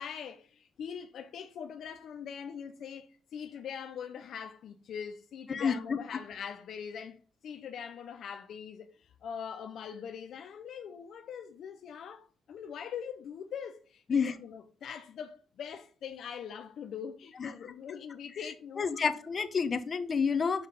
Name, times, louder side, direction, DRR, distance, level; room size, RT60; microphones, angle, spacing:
voice 1, 0.0-19.0, left 7 dB, 70° left, 0.6 m, -42 dB
voice 2, 5.5-6.0 14.1-14.3 17.4-17.5 18.8-20.7, left 6 dB, 40° left, 0.9 m, -29 dB
5.7 x 5.4 x 5.4 m
cardioid pair, 90°, 0 cm